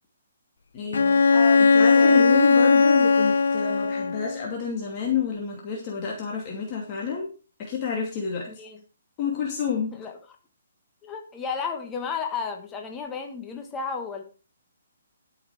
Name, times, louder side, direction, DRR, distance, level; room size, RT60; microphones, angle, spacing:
voice 1, 0.7-1.3 1.6-7.3 7.6-8.5 9.2-9.9, left 6 dB, 30° left, -2 dB, 2.5 m, -29 dB
Bowed string instrument, 0.9-4.4, left 4 dB, 75° left, 0.7 m, -18 dB
voice 2, 1.3-2.4 8.5-8.8 9.9-10.2 11.0-14.2, left 5 dB, 15° left, 3 dB, 1.4 m, -33 dB
12.5 x 6.6 x 4.8 m, 0.35 s
hypercardioid pair, 155°, 0 cm